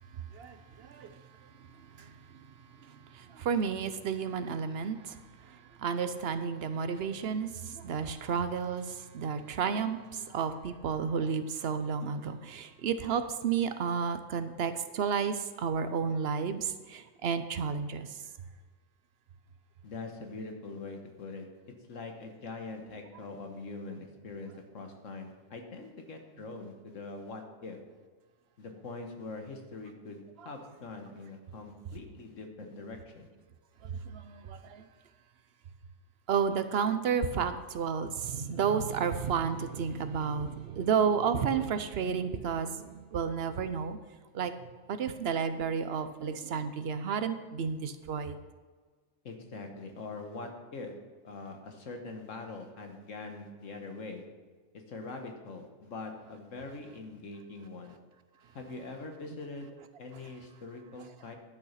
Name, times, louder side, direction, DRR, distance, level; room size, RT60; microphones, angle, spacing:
voice 1, 0.1-18.2 33.8-34.9 36.3-44.0 44.3-48.4, right 6 dB, 60° right, 11 dB, 0.9 m, -32 dB
voice 2, 19.8-21.5 21.9-27.8 28.6-33.3 49.2-50.9 51.2-54.2 54.7-58.0 58.5-59.7 60.0-61.4, left 3 dB, 80° left, 4 dB, 1.7 m, -43 dB
11.5 x 6.4 x 5.7 m, 1.4 s
omnidirectional pair, 1.3 m